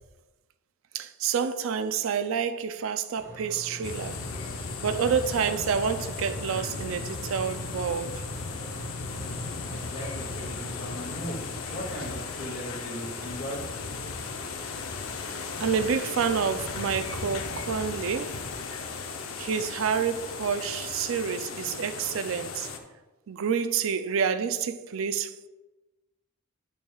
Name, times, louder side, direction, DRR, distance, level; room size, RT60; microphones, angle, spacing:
voice 1, 0.9-4.2 4.8-8.2 15.6-18.4 19.4-22.7 23.3-25.5, right 7 dB, 70° right, 0.4 m, -28 dB
sound 1, 3.2-11.4, right 1 dB, 15° right, 1.2 m, -44 dB
sound 2, 3.8-22.8, left 4 dB, 90° left, 0.7 m, -36 dB
voice 2, 9.7-11.4 11.7-13.9, equal, 50° left, 2.3 m, -38 dB
8.9 x 7.0 x 2.3 m
head